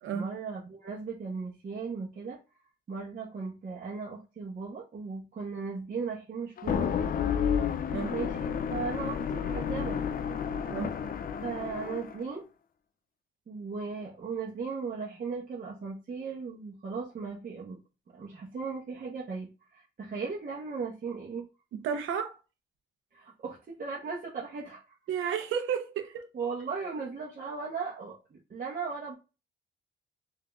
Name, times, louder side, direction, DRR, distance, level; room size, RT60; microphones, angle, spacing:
voice 1, 0.1-2.4 2.9-6.9 8.1-10.0 11.4-12.4 13.5-17.8 18.1-21.5 23.1-24.8 26.3-29.1, right 5 dB, 45° right, 1.2 m, -37 dB
sound 1, 6.6-12.2, left 7 dB, 45° left, 0.5 m, -31 dB
voice 2, 10.6-11.0 21.8-22.4 25.1-26.3, right 7 dB, 85° right, 0.9 m, -32 dB
3.6 x 2.8 x 3.6 m
cardioid pair, 90°, 20 cm